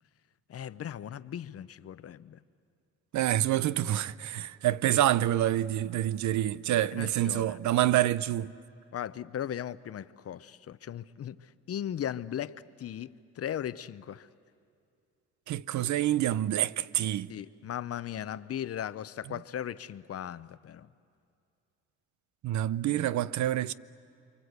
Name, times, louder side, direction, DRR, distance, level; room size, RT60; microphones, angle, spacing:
voice 1, 0.5-2.4 7.0-8.0 8.9-11.4 11.7-14.3 17.3-20.9, left 10 dB, 50° left, 0.7 m, -37 dB
voice 2, 3.1-8.5 15.5-17.3 22.4-23.7, right 13 dB, 70° right, 0.7 m, -27 dB
29.0 x 24.5 x 8.1 m
cardioid pair, 90°, 30 cm